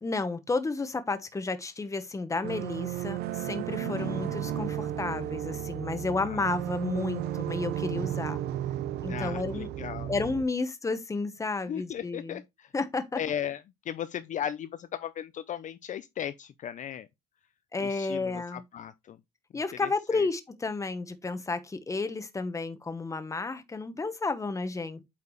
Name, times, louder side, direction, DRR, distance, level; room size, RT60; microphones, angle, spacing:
voice 1, 0.0-8.4 9.0-9.7 10.1-12.4 12.7-13.2 17.7-18.6 19.5-25.0, left 3 dB, 20° left, 1.1 m, -32 dB
sound 1, 2.4-10.4, right 11 dB, 70° right, 0.8 m, -34 dB
voice 2, 3.8-4.8 6.2-6.5 9.1-10.1 11.7-12.7 13.1-17.1 17.8-19.2 19.8-20.3, left 9 dB, 45° left, 0.5 m, -37 dB
8.4 x 4.6 x 3.1 m
cardioid pair, 110°, 17 cm